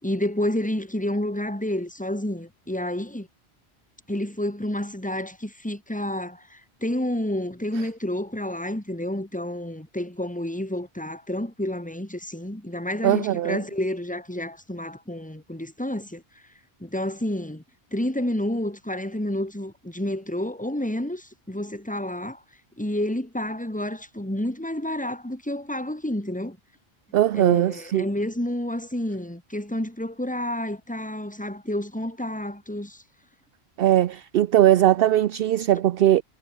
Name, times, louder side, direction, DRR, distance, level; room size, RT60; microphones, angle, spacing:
voice 1, 0.0-3.3 4.1-16.2 16.8-17.6 17.9-22.4 22.8-26.6 27.3-33.0, left 1 dB, 5° left, 3.0 m, -29 dB
voice 2, 13.0-13.6 27.1-28.1 33.8-36.2, right 12 dB, 65° right, 0.8 m, -20 dB
omnidirectional pair, 1.1 m